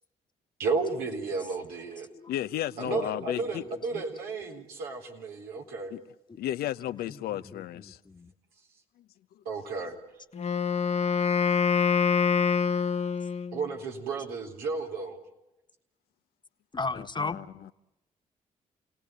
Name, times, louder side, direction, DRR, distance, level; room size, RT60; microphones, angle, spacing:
voice 1, 0.6-2.1 2.8-5.9 9.4-10.0 13.5-15.2, right 4 dB, 85° right, 4.0 m, -33 dB
voice 2, 2.3-3.6 5.9-6.0 6.4-8.0 16.9-17.7, left 12 dB, 80° left, 0.8 m, -34 dB
voice 3, 7.1-8.3 16.7-17.7, left 3 dB, 30° left, 1.6 m, -36 dB
Wind instrument woodwind instrument, 10.3-13.6, left 6 dB, 45° left, 1.3 m, -25 dB
29.5 x 18.0 x 9.3 m
supercardioid pair, 50°, 16 cm